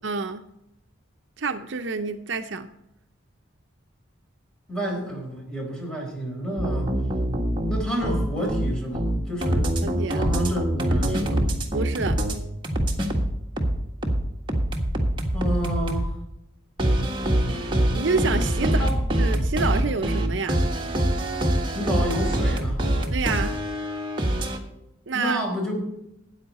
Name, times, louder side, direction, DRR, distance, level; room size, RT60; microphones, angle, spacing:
voice 1, 0.0-0.4 1.4-2.7 9.8-10.2 11.7-12.2 17.9-18.8 19.2-20.6 23.1-23.6 25.1-25.4, right 4 dB, 65° right, 8 dB, 0.6 m, -28 dB
voice 2, 4.7-6.9 7.7-9.7 10.1-11.4 15.3-16.1 18.6-19.0 21.7-22.8 25.1-25.9, equal, 5° left, -1 dB, 4.1 m, -30 dB
sound 1, 6.6-12.4 12.6-16.1 16.8-24.6, right 1 dB, 25° right, 1.6 m, -24 dB
14.0 x 9.5 x 4.2 m, 0.82 s
head